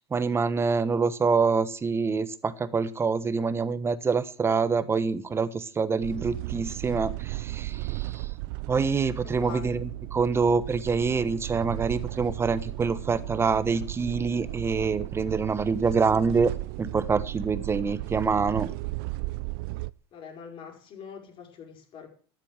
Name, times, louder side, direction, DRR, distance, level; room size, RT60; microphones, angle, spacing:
voice 1, 0.1-8.3 8.7-16.5 16.8-18.7, right 5 dB, 20° right, 1.2 m, -26 dB
sound 1, 6.0-19.9, right 21 dB, 60° right, 0.6 m, -35 dB
voice 2, 9.2-9.8 20.1-22.1, left 7 dB, 40° left, 4.9 m, -43 dB
13.0 x 10.5 x 7.6 m
hypercardioid pair, 105°, 14 cm